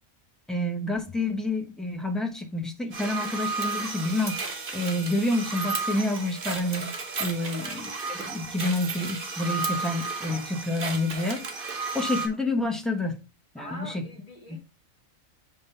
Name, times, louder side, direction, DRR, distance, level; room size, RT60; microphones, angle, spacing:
voice 1, 0.5-11.7 11.9-13.2 13.5-14.1 14.5-14.6, left 2 dB, ahead, 2 dB, 0.6 m, -29 dB
sound 1, 2.9-12.3, right 4 dB, 45° right, 1.1 m, -33 dB
voice 2, 7.4-7.8 13.6-14.6, equal, 25° left, 1 dB, 2.0 m, -43 dB
5.1 x 3.8 x 5.5 m, 0.31 s
omnidirectional pair, 1.4 m